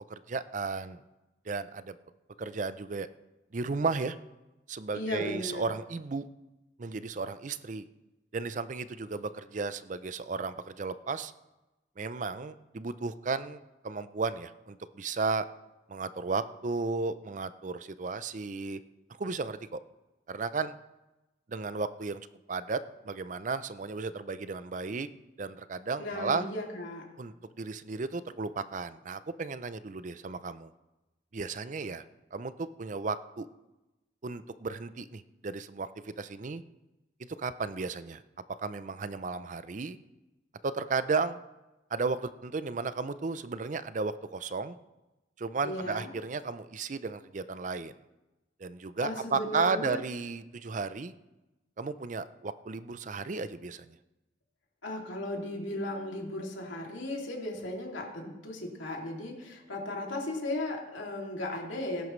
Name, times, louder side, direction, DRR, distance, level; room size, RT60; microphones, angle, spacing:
voice 1, 0.1-1.0 1.5-2.0 2.4-3.1 3.5-4.2 4.7-6.2 6.8-7.8 8.3-11.3 12.0-15.5 15.9-18.8 19.2-19.8 20.3-20.8 21.5-22.2 22.5-25.1 25.4-26.4 27.2-30.7 31.3-32.0 32.3-33.5 34.2-36.6 37.4-38.2 38.6-40.0 40.6-41.4 41.9-44.8 45.4-47.9 48.6-51.1 51.8-54.0, right 4 dB, 40° right, 13 dB, 0.5 m, -34 dB
voice 2, 4.9-5.6 26.0-27.0 45.6-46.1 49.0-50.0 54.8-62.1, left 1 dB, 90° left, 0 dB, 2.7 m, -36 dB
19.0 x 11.0 x 3.2 m, 1.0 s
head